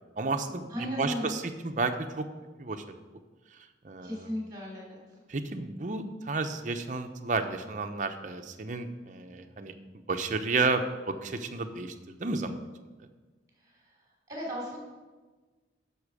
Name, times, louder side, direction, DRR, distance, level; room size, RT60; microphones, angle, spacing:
voice 1, 0.2-2.2 2.6-2.8 3.8-4.3 5.3-9.7 10.1-12.6, right 3 dB, 40° right, 6 dB, 0.7 m, -32 dB
voice 2, 0.7-1.4 4.0-5.0 13.6-13.9 14.3-14.8, equal, 20° right, -3 dB, 3.5 m, -36 dB
10.0 x 6.5 x 4.9 m, 1.3 s
head